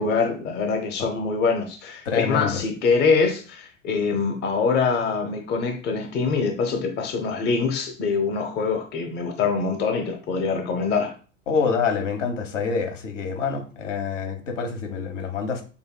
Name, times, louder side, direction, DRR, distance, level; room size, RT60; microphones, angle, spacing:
voice 1, 0.0-11.1, left 5 dB, 25° left, 0.7 m, -24 dB
voice 2, 2.0-2.6 11.5-15.6, left 5 dB, 65° left, 1.2 m, -26 dB
6.7 x 2.6 x 2.2 m
figure-of-eight pair, 85°, 39 cm